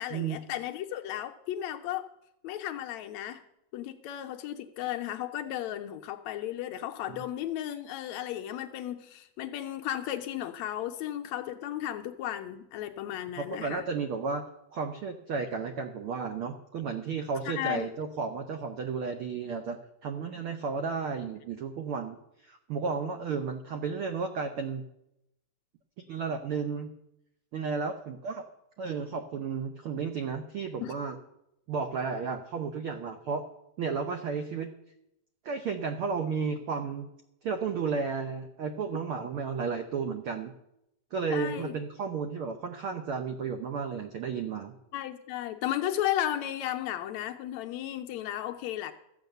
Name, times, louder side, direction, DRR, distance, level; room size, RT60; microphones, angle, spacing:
voice 1, 0.0-2.1 2.4-3.4 3.7-13.9 17.4-17.9 30.8-30.9 41.3-41.8 44.9-48.9, left 12 dB, 75° left, 6 dB, 1.8 m, -34 dB
voice 2, 13.4-14.4 14.7-24.8 26.1-26.9 27.5-28.4 28.8-31.2 31.7-33.4 33.8-34.7 35.4-37.1 37.4-40.5 41.1-44.7, right 5 dB, 85° right, 6 dB, 1.2 m, -33 dB
13.5 x 8.0 x 6.7 m, 0.83 s
omnidirectional pair, 3.5 m